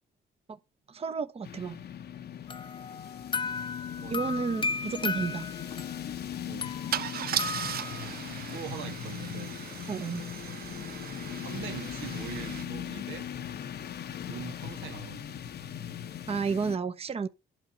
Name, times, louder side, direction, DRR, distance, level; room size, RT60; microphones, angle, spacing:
voice 1, 0.9-1.8 4.1-5.5 9.9-10.2 16.3-17.3, right 5 dB, 30° right, 0.8 m, -31 dB
sound 1, 1.4-16.8, left 9 dB, 55° left, 0.8 m, -39 dB
sound 2, 2.5-6.1 6.6-8.1, left 4 dB, 25° left, 0.6 m, -35 dB
voice 2, 4.0-4.3 6.5-6.7 8.5-9.6 11.4-13.3 14.2-15.4, right 8 dB, 80° right, 1.2 m, -42 dB
Car / Engine starting / Idling, 4.3-4.4 4.7-4.9 6.9-12.6, right 10 dB, 50° right, 0.4 m, -37 dB
11.5 x 6.1 x 5.5 m
cardioid pair, 90°, 20 cm